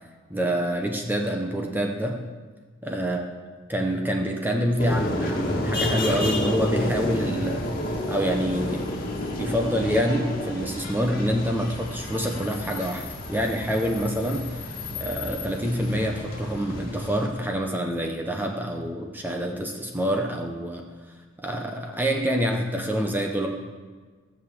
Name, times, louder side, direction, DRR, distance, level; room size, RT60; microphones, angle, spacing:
voice 1, 0.3-2.2 2.9-3.3 3.7-8.9 9.3-14.7 15.0-20.8 21.4-23.5, equal, 10° right, 2 dB, 1.0 m, -26 dB
sound 1, 4.8-17.3, left 1 dB, 45° left, 2.0 m, -30 dB
16.0 x 6.4 x 7.3 m, 1.4 s
head